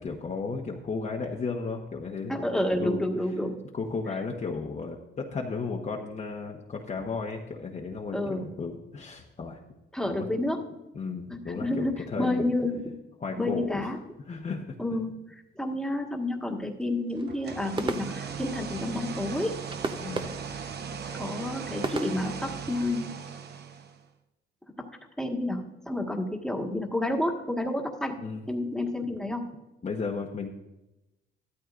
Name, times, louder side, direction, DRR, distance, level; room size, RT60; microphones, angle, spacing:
voice 1, 0.0-2.3 2.8-3.1 3.7-9.6 10.1-10.3 10.9-12.4 13.2-13.9 14.3-14.6 20.0-20.4 28.2-28.5 29.8-30.5, left 4 dB, 35° left, -1 dB, 1.1 m, -34 dB
voice 2, 2.3-3.6 8.1-8.5 9.9-10.8 11.3-13.0 13.4-14.0 14.8-19.6 21.1-23.1 24.8-24.9 25.2-28.2 28.5-29.5, left 1 dB, 5° left, 1 dB, 1.6 m, -30 dB
sound 1, 17.2-22.9, right 3 dB, 25° right, 0.8 m, -38 dB
sound 2, 17.3-24.0, right 6 dB, 55° right, 1.0 m, -38 dB
13.0 x 12.5 x 2.5 m, 0.97 s
cardioid pair, 90°, 20 cm